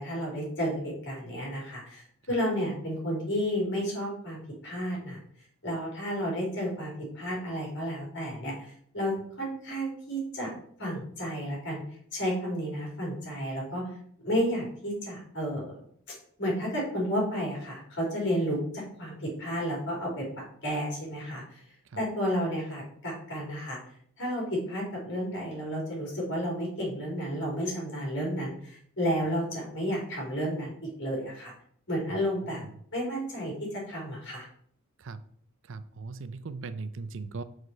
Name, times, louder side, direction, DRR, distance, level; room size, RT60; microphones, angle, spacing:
voice 1, 0.0-5.2 5.6-10.5 10.8-11.8 12.1-13.9 14.2-15.8 16.4-20.3 20.6-21.6 22.0-23.8 24.2-30.7 31.0-31.5 31.9-32.6 32.9-34.5, equal, 55° left, -3 dB, 3.7 m, -32 dB
voice 2, 35.7-37.4, right 4 dB, 55° right, 13 dB, 0.5 m, -38 dB
6.3 x 4.7 x 5.7 m, 0.62 s
head